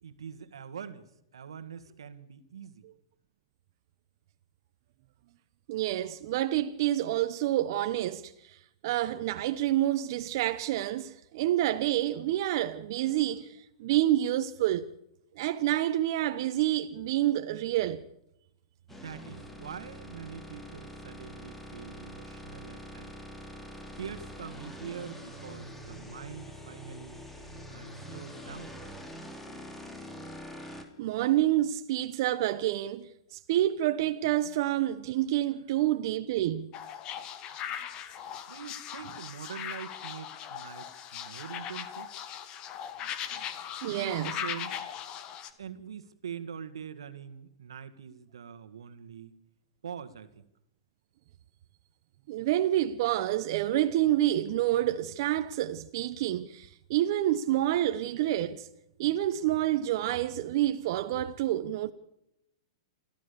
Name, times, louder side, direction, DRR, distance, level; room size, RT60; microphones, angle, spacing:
voice 1, 0.0-2.9 18.9-23.1 24.0-27.2 27.7-28.8 38.5-42.1 43.3-43.5 43.8-44.8 45.6-49.3 49.8-50.5, right 7 dB, 90° right, 1.9 m, -44 dB
voice 2, 5.7-8.6 8.8-14.9 15.4-18.0 31.0-36.7 43.8-44.4 52.3-58.7 59.0-61.9, right 13 dB, 55° right, 1.0 m, -28 dB
sound 1, 18.9-30.8, equal, 10° left, 3.0 m, -45 dB
sound 2, 36.7-45.5, left 9 dB, 30° left, 1.9 m, -39 dB
28.0 x 14.0 x 6.9 m
hypercardioid pair, 140°, 3 cm